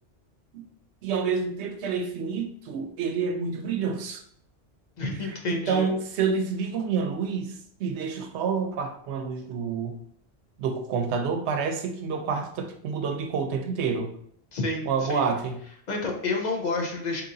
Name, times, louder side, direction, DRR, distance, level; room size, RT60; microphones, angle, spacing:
voice 1, 1.0-4.2 5.5-7.5 7.8-10.0 10.6-14.2 14.9-15.6, right 5 dB, 80° right, 6 dB, 0.9 m, -28 dB
voice 2, 5.0-5.9 14.5-15.2 15.9-17.2, left 3 dB, 45° left, 1 dB, 0.7 m, -29 dB
3.8 x 2.9 x 2.6 m, 0.64 s
omnidirectional pair, 1.1 m